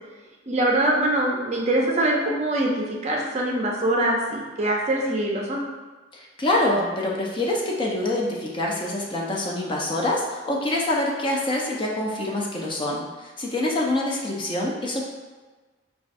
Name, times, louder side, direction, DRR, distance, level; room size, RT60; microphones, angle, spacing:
voice 1, 0.5-5.6, right 1 dB, 35° right, -2 dB, 0.5 m, -23 dB
voice 2, 6.1-15.0, left 1 dB, 25° left, -3 dB, 0.4 m, -25 dB
5.2 x 2.3 x 2.5 m, 1.3 s
head